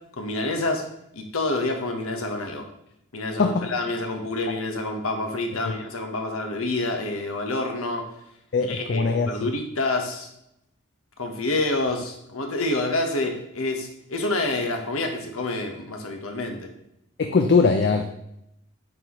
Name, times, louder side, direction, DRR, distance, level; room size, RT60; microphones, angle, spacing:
voice 1, 0.2-0.8 1.1-2.6 3.1-8.0 8.7-10.3 11.2-16.7, left 2 dB, 85° left, 4 dB, 1.1 m, -28 dB
voice 2, 8.5-9.4 17.2-18.1, left 4 dB, 50° left, 5 dB, 0.4 m, -21 dB
8.9 x 4.2 x 3.0 m, 0.81 s
head